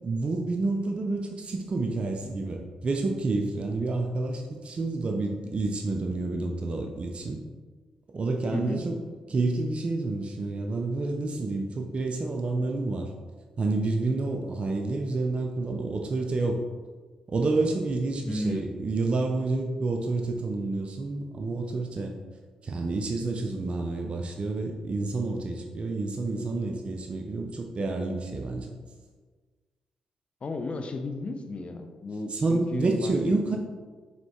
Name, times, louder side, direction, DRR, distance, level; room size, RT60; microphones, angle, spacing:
voice 1, 0.0-7.4 8.1-9.0 9.3-13.1 13.6-16.6 17.3-22.1 22.6-28.7 32.3-33.6, right 3 dB, 45° right, 2 dB, 0.4 m, -29 dB
voice 2, 8.5-8.8 18.2-18.7 30.4-33.6, left 2 dB, 50° left, 7 dB, 0.5 m, -34 dB
4.3 x 3.1 x 2.8 m, 1.4 s
supercardioid pair, 45°, 3 cm